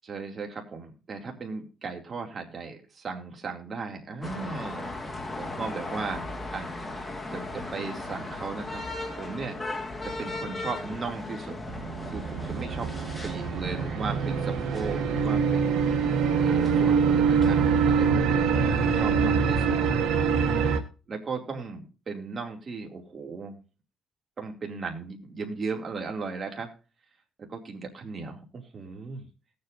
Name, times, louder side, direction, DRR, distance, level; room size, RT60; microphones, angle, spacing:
voice 1, 0.1-6.7 7.3-8.8 9.1-9.6 10.2-11.6 12.1-12.9 13.2-15.8 16.4-17.6 17.8-18.4 18.9-19.7 21.1-23.6 24.4-26.7 27.5-29.3, right 4 dB, 45° right, 2 dB, 2.5 m, -36 dB
sound 1, 4.2-18.1, left 2 dB, 15° left, 1.9 m, -37 dB
sound 2, 11.7-20.8, right 6 dB, 90° right, 1.2 m, -24 dB
19.0 x 7.8 x 2.6 m, 0.34 s
cardioid pair, 90°, 0 cm